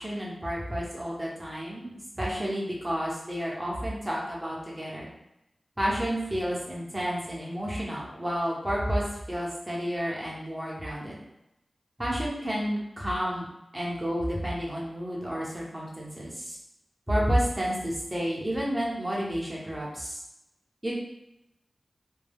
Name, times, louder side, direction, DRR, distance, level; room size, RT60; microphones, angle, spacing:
voice 1, 0.0-5.1 5.8-11.2 12.0-13.5 13.7-16.6 17.1-20.2 20.8-20.9, equal, 15° right, -5 dB, 0.8 m, -30 dB
2.2 x 2.2 x 3.4 m, 0.85 s
wide cardioid pair, 85°, 0 cm